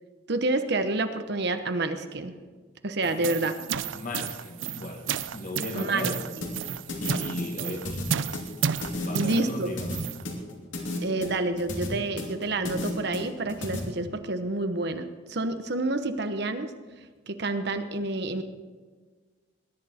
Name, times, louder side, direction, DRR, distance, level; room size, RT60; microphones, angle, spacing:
voice 1, 0.3-2.3 2.8-3.5 5.7-6.1 9.1-9.7 11.0-16.7 17.3-18.4, right 2 dB, 60° right, 1.1 m, -28 dB
sound 1, 3.0-10.2, right 7 dB, 85° right, 0.6 m, -32 dB
voice 2, 3.9-6.3 7.0-8.1 9.1-10.0, left 1 dB, 45° left, 1.7 m, -36 dB
sound 2, 6.4-13.8, left 2 dB, 80° left, 3.1 m, -34 dB
20.5 x 11.0 x 4.4 m
head